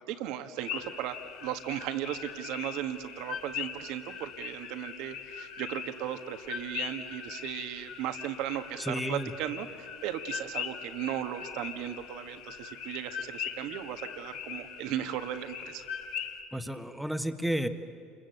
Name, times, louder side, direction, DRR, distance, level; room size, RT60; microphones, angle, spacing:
voice 1, 0.0-15.9, right 11 dB, 65° right, 8 dB, 1.6 m, -36 dB
sound 1, 0.6-16.4, left 7 dB, 70° left, 2.2 m, -41 dB
voice 2, 8.8-9.3 16.5-17.7, equal, ahead, 8 dB, 1.6 m, -32 dB
28.0 x 22.0 x 8.1 m, 2.4 s
hypercardioid pair, 80°, 0 cm